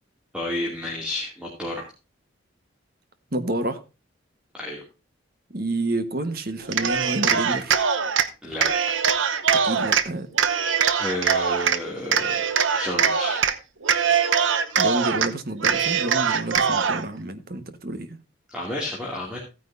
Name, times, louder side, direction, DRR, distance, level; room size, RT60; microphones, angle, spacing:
voice 1, 0.3-1.8 4.5-4.8 8.4-8.7 11.0-13.4 18.5-19.4, left 1 dB, 5° right, 2.4 m, -31 dB
voice 2, 3.3-3.8 5.5-7.8 9.6-10.3 14.8-18.2, right 1 dB, 50° right, 1.3 m, -29 dB
Cheering, 6.6-8.3 8.6-10.0 10.4-11.8 12.1-13.5 13.8-15.3 15.6-17.0, right 6 dB, 75° right, 0.9 m, -22 dB
15.5 x 9.5 x 2.6 m
head